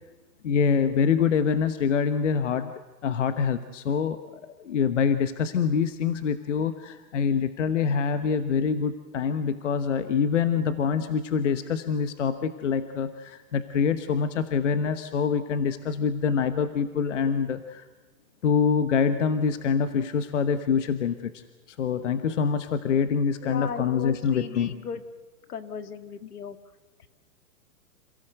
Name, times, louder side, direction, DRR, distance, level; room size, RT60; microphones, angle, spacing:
voice 1, 0.4-2.7 3.0-17.8 18.4-21.4 21.7-24.8 26.2-26.3, left 6 dB, 50° left, 10 dB, 1.1 m, -25 dB
voice 2, 23.4-25.0 25.5-26.6, left 6 dB, 70° left, 10 dB, 2.0 m, -36 dB
28.0 x 17.0 x 7.9 m, 1.2 s
hypercardioid pair, 170°, 48 cm